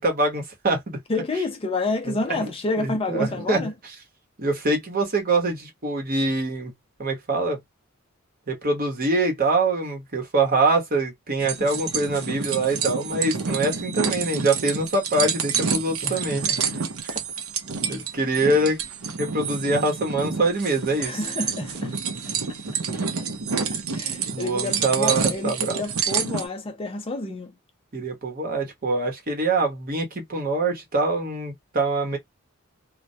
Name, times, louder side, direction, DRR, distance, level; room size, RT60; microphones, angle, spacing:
voice 1, 0.0-1.0 2.1-2.5 2.8-3.6 4.4-6.7 7.0-7.6 8.5-16.4 17.1-17.2 17.9-18.8 19.2-21.2 24.3-25.8 27.9-32.2, right 2 dB, 45° right, 0.9 m, -24 dB
voice 2, 1.1-3.7 11.6-11.7 16.0-16.8 21.0-22.0 23.7-27.5, left 2 dB, 25° left, 0.5 m, -29 dB
sound 1, 11.4-26.5, right 6 dB, 75° right, 0.6 m, -28 dB
2.2 x 2.1 x 2.7 m
head